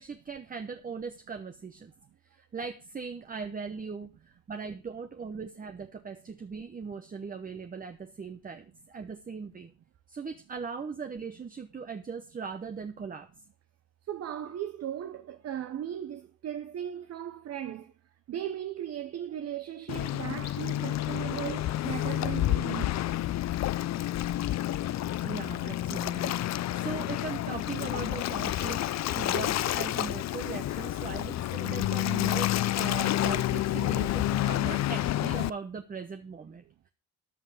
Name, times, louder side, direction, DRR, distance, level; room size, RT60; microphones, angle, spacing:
voice 1, 0.0-1.9 2.3-9.7 10.1-13.3 25.2-36.9, right 5 dB, 30° right, 0.9 m, -39 dB
voice 2, 14.1-17.9 18.3-23.0 36.7-36.8, right 10 dB, 55° right, 0.8 m, -37 dB
Waves surf, 19.9-35.5, left 14 dB, 60° left, 0.5 m, -29 dB
13.5 x 5.4 x 6.0 m
cardioid pair, 90°, 30 cm